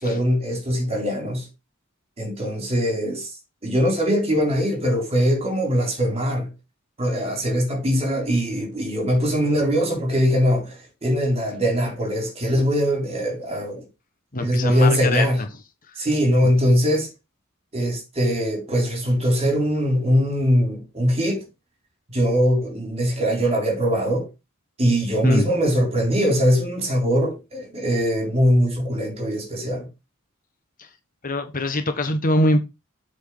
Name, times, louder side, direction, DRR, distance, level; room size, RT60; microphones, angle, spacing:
voice 1, 0.0-1.5 2.2-3.3 3.6-6.5 7.0-13.8 14.4-15.4 16.0-17.1 17.7-21.4 22.1-24.3 24.8-29.9, equal, 30° right, 3.7 m, -21 dB
voice 2, 14.3-15.3 15.9-16.0 25.2-25.5 30.8-30.9 31.2-32.6, left 1 dB, 40° left, 1.3 m, -23 dB
8.1 x 4.5 x 6.3 m
head